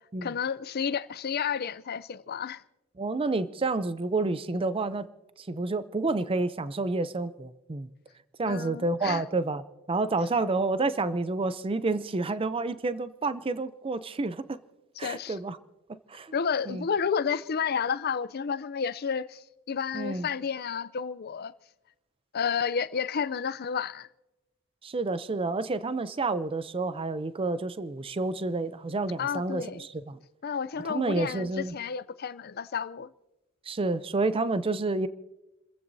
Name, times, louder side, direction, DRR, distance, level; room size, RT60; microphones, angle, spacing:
voice 1, 0.2-2.6 8.4-9.2 15.0-15.4 16.3-21.5 22.3-24.1 29.2-29.9 30.4-33.1, left 6 dB, 50° left, 0.5 m, -31 dB
voice 2, 3.0-5.1 5.4-7.9 8.4-14.6 15.0-15.6 16.1-16.3 16.7-16.8 19.9-20.3 24.8-30.2 30.8-31.7 33.7-35.1, right 3 dB, 25° right, 0.5 m, -29 dB
30.0 x 15.0 x 2.7 m
head